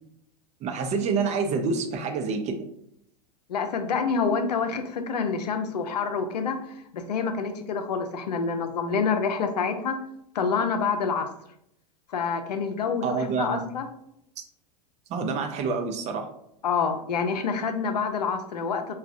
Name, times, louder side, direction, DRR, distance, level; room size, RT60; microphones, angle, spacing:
voice 1, 0.6-2.6 13.0-13.6 15.1-16.3, right 5 dB, 35° right, 5 dB, 0.6 m, -27 dB
voice 2, 3.5-6.6 6.9-10.0 10.3-11.3 12.1-13.9 16.6-18.9, left 5 dB, 80° left, 7 dB, 0.5 m, -27 dB
4.7 x 2.3 x 2.5 m, 0.76 s
hypercardioid pair, 95°, 21 cm